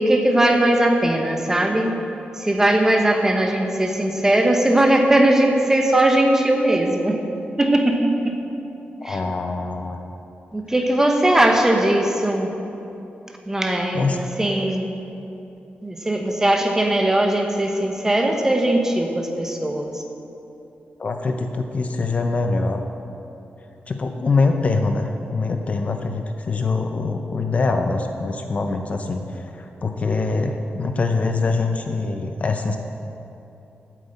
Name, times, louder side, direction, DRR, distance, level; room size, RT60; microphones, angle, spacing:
voice 1, 0.0-2.0 2.4-7.2 7.6-8.4 9.0-9.2 10.5-12.5 13.4-14.9 15.8-20.0, right 1 dB, 15° right, 3 dB, 1.0 m, -19 dB
voice 2, 9.0-10.0 13.9-14.2 21.0-22.8 23.9-32.8, left 3 dB, 40° left, 5 dB, 0.6 m, -23 dB
8.7 x 8.2 x 8.1 m, 2.9 s
wide cardioid pair, 165°, 4 cm